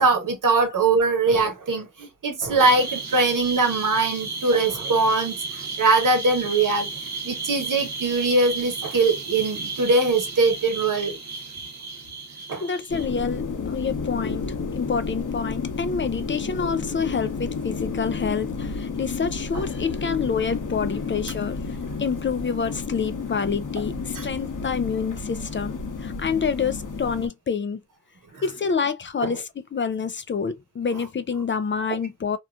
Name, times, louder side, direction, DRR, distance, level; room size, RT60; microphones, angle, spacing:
voice 1, 0.0-6.9 7.2-11.2 12.5-12.6 24.1-24.3 28.3-28.4 29.2-29.3, right 3 dB, 80° right, 1.0 m, -22 dB
sound 1, 2.6-13.1, right 3 dB, 60° right, 0.8 m, -33 dB
voice 2, 12.6-21.6 22.0-27.8 28.4-32.4, left 6 dB, 40° left, 0.4 m, -27 dB
natural wind, 12.9-27.3, left 4 dB, 75° left, 1.0 m, -31 dB
2.8 x 2.3 x 2.4 m
cardioid pair, 50°, 31 cm